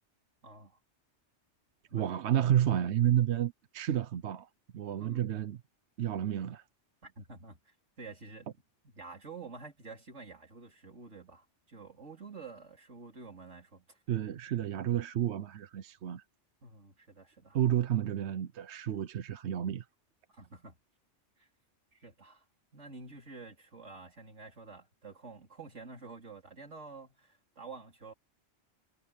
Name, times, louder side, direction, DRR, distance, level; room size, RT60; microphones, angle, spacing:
voice 1, 0.4-0.8 1.9-2.1 5.0-5.2 7.0-8.5 8.8-14.0 16.6-17.6 20.3-20.8 21.4-21.5 21.9-22.4 22.7-28.1, right 4 dB, 85° right, 4.4 m, -49 dB
voice 2, 1.9-5.6 6.0-6.6 14.1-16.2 17.5-19.9, right 11 dB, 70° right, 1.0 m, -31 dB
omnidirectional pair, 1.2 m